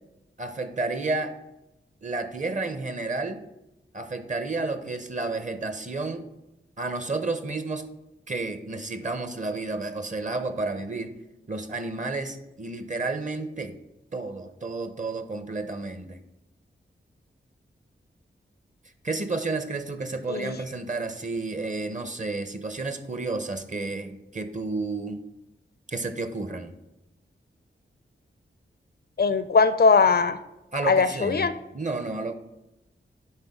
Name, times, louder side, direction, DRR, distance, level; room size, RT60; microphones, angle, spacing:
voice 1, 0.4-1.4 2.0-3.4 3.9-6.3 6.8-7.9 8.3-11.1 11.5-13.8 14.1-16.2 19.0-25.2 25.9-26.7 30.7-32.3, right 3 dB, 35° right, 9 dB, 0.8 m, -31 dB
voice 2, 29.2-30.4 30.9-31.5, left 5 dB, 50° left, 12 dB, 0.4 m, -20 dB
9.8 x 3.7 x 3.6 m, 0.92 s
cardioid pair, 45°, 21 cm